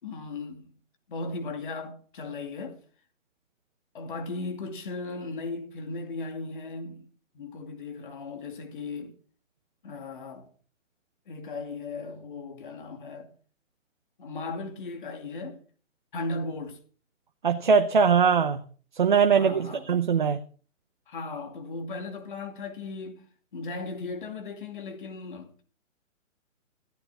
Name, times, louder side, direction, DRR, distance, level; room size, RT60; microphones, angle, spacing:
voice 1, 0.0-0.7 1.1-2.8 3.9-7.1 7.3-9.2 9.8-10.5 11.3-13.3 14.2-15.6 16.1-16.8 19.3-20.0 21.1-23.3 23.5-25.6, left 3 dB, 40° left, 2.5 m, -37 dB
voice 2, 17.4-18.6 18.9-20.4, right 6 dB, 40° right, 0.9 m, -21 dB
15.0 x 11.0 x 4.9 m
hypercardioid pair, 175°, 40 cm